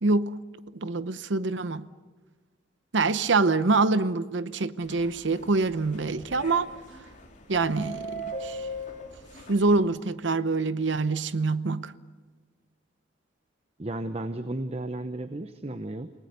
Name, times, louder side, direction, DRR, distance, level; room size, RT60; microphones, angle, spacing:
voice 1, 0.0-0.3 0.7-1.9 2.9-6.7 7.5-8.7 9.5-11.9, right 3 dB, 75° right, 0.8 m, -25 dB
sound 1, 4.8-9.8, right 1 dB, 40° left, 3.4 m, -40 dB
voice 2, 13.8-16.1, right 1 dB, 30° right, 0.8 m, -34 dB
28.0 x 19.0 x 6.7 m
head